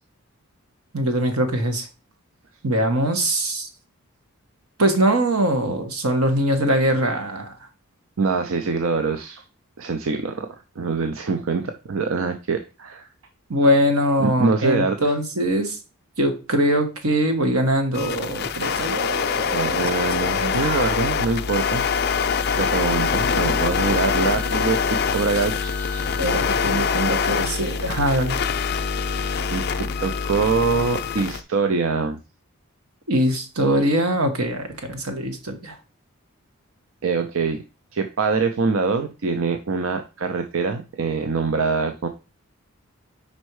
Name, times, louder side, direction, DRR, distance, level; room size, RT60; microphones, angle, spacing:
voice 1, 0.9-1.9 2.6-3.7 4.8-7.5 13.5-15.8 16.2-19.9 20.2-20.9 26.2-28.4 33.1-35.8, right 1 dB, 85° right, 5 dB, 1.3 m, -22 dB
voice 2, 8.2-9.4 9.8-13.1 14.2-15.0 19.5-21.9 22.2-26.5 29.5-29.6 30.0-32.2 37.0-37.6 37.9-42.1, right 4 dB, 65° right, 7 dB, 0.5 m, -24 dB
sound 1, 17.9-31.4, left 6 dB, 45° left, 0.4 m, -24 dB
5.4 x 4.2 x 4.7 m, 0.31 s
head